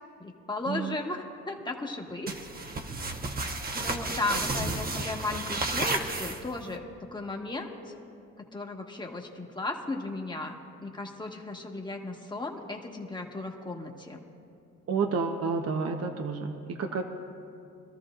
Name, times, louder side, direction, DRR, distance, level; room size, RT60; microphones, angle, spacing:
voice 1, 0.2-2.3 3.7-6.8 7.1-7.9 8.5-14.2, left 2 dB, 15° left, 1 dB, 1.5 m, -35 dB
sound 1, 2.3-6.7, right 2 dB, 30° right, 1.1 m, -32 dB
voice 2, 14.9-17.0, right 5 dB, 55° right, 4 dB, 1.0 m, -30 dB
24.5 x 13.5 x 2.5 m, 2.5 s
cardioid pair, 90°, 30 cm